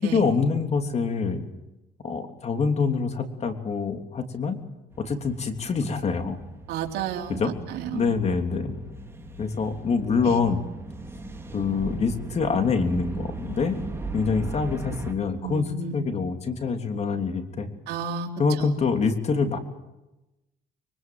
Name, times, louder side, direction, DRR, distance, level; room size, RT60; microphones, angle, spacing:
voice 1, 0.0-1.5 2.0-4.6 5.0-6.4 7.3-7.5 7.9-8.8 9.4-10.6 11.5-13.8 14.1-17.7 18.4-19.6, left 5 dB, 40° left, 6 dB, 3.2 m, -25 dB
sound 1, 4.9-15.1, right 3 dB, 15° right, 3.6 m, -38 dB
voice 2, 6.7-8.1 10.2-10.4 15.4-16.0 17.9-18.3 18.6-18.7, right 7 dB, 75° right, 1 dB, 3.6 m, -32 dB
24.5 x 24.0 x 7.8 m, 0.99 s
cardioid pair, 110°, 17 cm